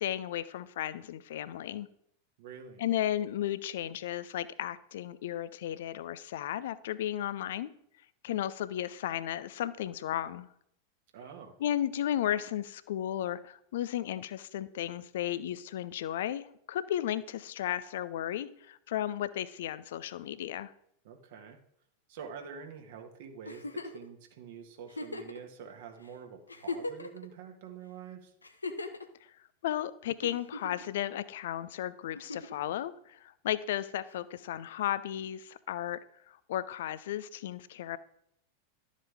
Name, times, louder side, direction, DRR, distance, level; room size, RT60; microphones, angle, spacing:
voice 1, 0.0-1.9 2.8-7.7 8.2-10.5 11.6-20.7 29.6-36.0 36.3-38.0, left 11 dB, 55° left, 16 dB, 0.6 m, -34 dB
voice 2, 2.4-2.8 11.1-11.5 21.0-21.6 22.1-28.3, right 7 dB, 55° right, 4 dB, 1.7 m, -46 dB
Giggle, 23.5-24.0 24.9-25.4 26.0-26.1 26.5-27.3 28.4-29.1 30.2-30.9 32.2-32.6 34.1-34.2, left 3 dB, 80° left, 0.9 m, -38 dB
12.5 x 7.4 x 3.6 m, 0.70 s
figure-of-eight pair, 90°, 0 cm